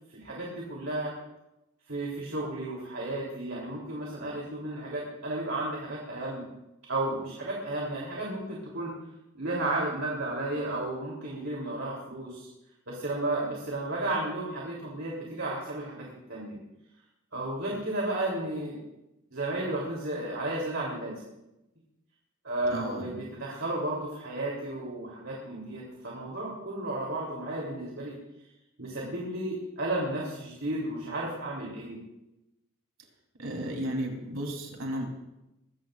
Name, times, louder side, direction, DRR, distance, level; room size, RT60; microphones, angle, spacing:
voice 1, 0.1-1.1 1.9-6.4 6.9-8.9 9.3-12.5 12.9-16.6 17.3-18.8 19.3-21.1 22.4-28.2 28.8-32.0, right 2 dB, 60° right, -4 dB, 3.5 m, -33 dB
voice 2, 22.7-23.1 33.4-35.0, right 1 dB, 90° right, 1 dB, 3.8 m, -34 dB
22.5 x 17.0 x 2.6 m, 0.93 s
head